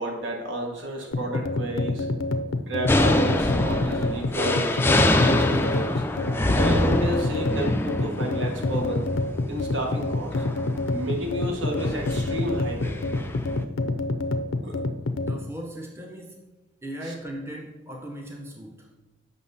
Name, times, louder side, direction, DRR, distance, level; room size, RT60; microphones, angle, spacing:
voice 1, 0.0-2.1 2.7-6.0 6.5-9.1 9.5-10.4 10.9-13.1 14.6-14.8 17.0-17.1, right 1 dB, 70° right, 1 dB, 1.3 m, -31 dB
sound 1, 1.1-15.4, left 2 dB, 85° left, 0.6 m, -27 dB
sound 2, 2.9-13.6, left 1 dB, 10° left, 0.3 m, -26 dB
voice 2, 15.1-16.5 16.8-18.9, right 1 dB, 10° right, 1 dB, 0.7 m, -38 dB
7.6 x 5.6 x 4.1 m, 1.0 s
head